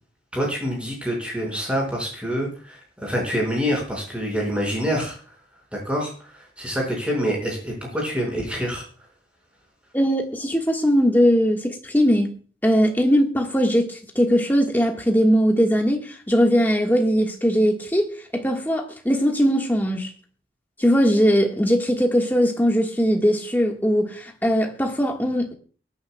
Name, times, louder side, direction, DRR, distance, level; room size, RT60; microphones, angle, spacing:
voice 1, 0.3-5.2 5.7-8.8, equal, 5° right, 5.2 m, -26 dB
voice 2, 9.9-12.4 12.6-20.1 20.8-25.5, equal, 10° left, 1.5 m, -20 dB
23.5 x 9.6 x 2.2 m
head